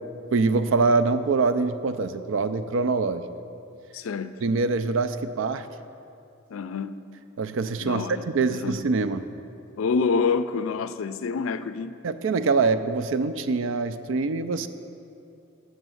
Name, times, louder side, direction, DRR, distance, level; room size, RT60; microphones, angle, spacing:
voice 1, 0.3-3.3 4.4-5.7 7.4-8.1 8.3-9.2 12.0-14.7, right 4 dB, 65° right, 0.4 m, -24 dB
voice 2, 3.9-4.4 6.5-7.0 7.8-8.2 8.5-8.8 9.8-12.0, left 5 dB, 75° left, 0.4 m, -27 dB
8.0 x 6.4 x 7.7 m
head